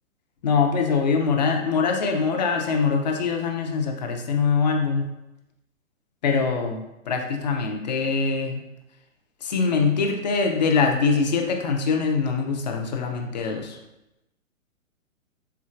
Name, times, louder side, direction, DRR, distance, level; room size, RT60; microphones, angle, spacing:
voice 1, 0.4-5.1 6.2-8.6 9.4-13.8, left 5 dB, 35° left, 3 dB, 0.4 m, -23 dB
4.5 x 3.6 x 2.4 m, 0.92 s
hypercardioid pair, 130°, 41 cm